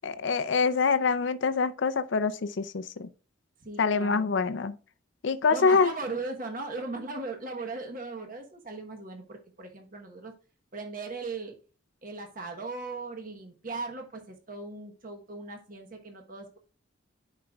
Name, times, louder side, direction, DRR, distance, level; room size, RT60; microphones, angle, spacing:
voice 1, 0.0-3.1 3.8-4.7 5.2-5.9, left 4 dB, 65° left, 0.5 m, -25 dB
voice 2, 3.6-4.3 5.5-10.3 10.7-11.6 12.0-16.6, right 3 dB, 45° right, 1.1 m, -38 dB
11.0 x 5.0 x 2.3 m
head